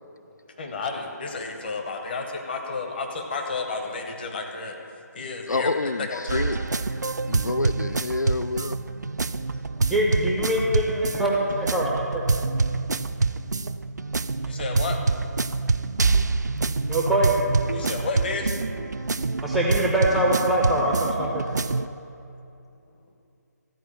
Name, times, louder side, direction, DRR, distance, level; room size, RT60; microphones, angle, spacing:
voice 1, 0.5-6.7 14.5-15.0 17.7-18.6, left 4 dB, 35° left, 2 dB, 1.1 m, -32 dB
voice 2, 5.5-6.6 7.3-8.8, left 3 dB, 80° left, 12 dB, 0.4 m, -28 dB
sound 1, 6.3-21.9, right 3 dB, 75° right, 0.4 m, -26 dB
voice 3, 9.9-12.2 16.9-17.3 19.4-21.4, right 1 dB, ahead, -3 dB, 0.5 m, -23 dB
13.5 x 4.6 x 8.4 m, 2.6 s
figure-of-eight pair, 150°, 10 cm